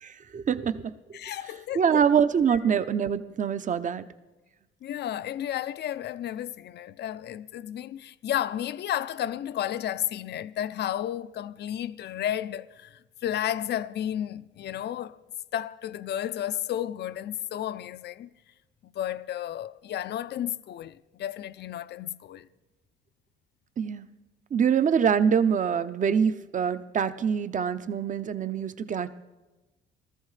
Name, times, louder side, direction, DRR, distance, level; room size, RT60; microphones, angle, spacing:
voice 1, 0.0-1.2 1.7-4.1 23.8-24.1 24.5-29.1, right 7 dB, 40° right, 0.6 m, -25 dB
voice 2, 1.1-2.1 2.5-2.6 4.8-15.2 15.5-18.3 18.8-22.5, left 11 dB, 60° left, 0.5 m, -32 dB
19.0 x 13.5 x 3.2 m
cardioid pair, 90°, 20 cm